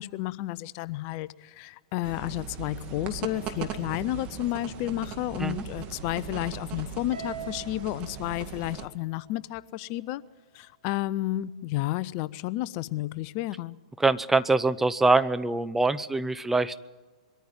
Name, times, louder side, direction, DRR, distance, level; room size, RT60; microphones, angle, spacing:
voice 1, 0.0-10.2 10.5-13.8, left 16 dB, 45° left, 18 dB, 0.6 m, -31 dB
sound 1, 2.0-8.9, right 9 dB, 35° right, 2.1 m, -39 dB
Harp, 7.1-9.6, right 6 dB, 75° right, 4.5 m, -43 dB
voice 2, 14.0-16.8, right 3 dB, 5° right, 13 dB, 0.6 m, -24 dB
22.5 x 14.0 x 9.1 m, 1.3 s
hypercardioid pair, 110°, 3 cm